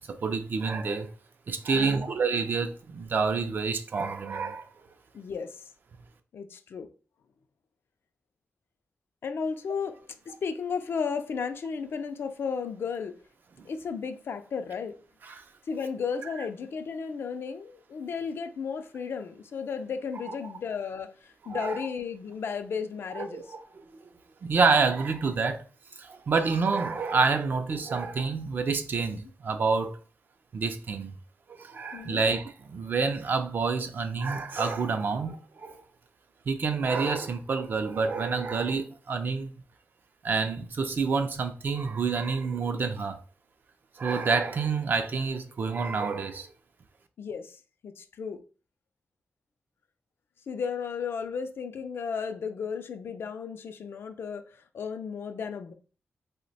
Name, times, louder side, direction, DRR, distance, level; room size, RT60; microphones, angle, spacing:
voice 1, 0.1-1.1 1.5-4.7 15.2-15.4 20.3-20.5 21.4-21.9 23.1-23.6 24.4-25.6 26.0-30.0 30.5-31.1 31.5-35.8 36.5-39.5 40.2-43.2 44.0-46.5, right 4 dB, 50° right, 0.4 m, -28 dB
voice 2, 1.7-2.1 5.1-5.6 6.3-6.9 9.2-13.2 13.6-15.0 15.7-23.4 31.9-32.3 47.2-48.4 50.5-55.7, left 6 dB, 65° left, 0.4 m, -34 dB
2.8 x 2.1 x 4.0 m
wide cardioid pair, 150°, 4 cm